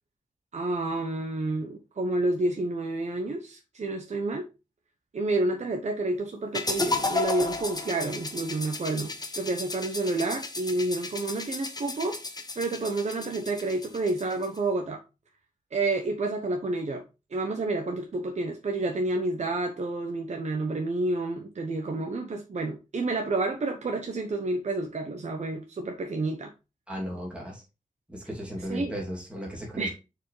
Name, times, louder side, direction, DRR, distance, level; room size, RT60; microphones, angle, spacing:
voice 1, 0.5-4.5 5.1-12.2 12.6-15.0 15.7-17.0 17.3-26.5 28.7-28.9 29.8-29.9, right 2 dB, 55° right, 1.0 m, -29 dB
sound 1, 6.5-14.6, left 3 dB, 30° left, 0.9 m, -33 dB
voice 2, 26.9-27.6 28.1-29.9, equal, 10° right, 2.7 m, -35 dB
6.4 x 4.7 x 3.2 m
wide cardioid pair, 110°, 14 cm